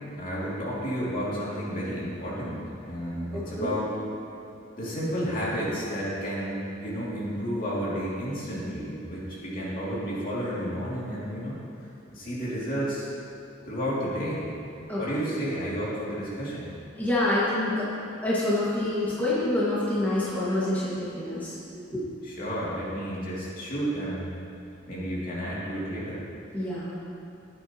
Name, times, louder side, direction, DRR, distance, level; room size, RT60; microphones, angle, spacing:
voice 1, 0.2-3.9 4.8-11.6 12.1-13.1 13.7-14.5 15.0-16.7 22.2-24.4 24.9-26.2, equal, 45° left, -7 dB, 2.6 m, -31 dB
voice 2, 3.3-3.7 14.9-15.0 17.0-17.9 18.2-21.6 21.9-22.0 26.5-26.9, left 1 dB, 10° left, -10 dB, 1.7 m, -27 dB
13.5 x 9.3 x 2.9 m, 2.6 s
head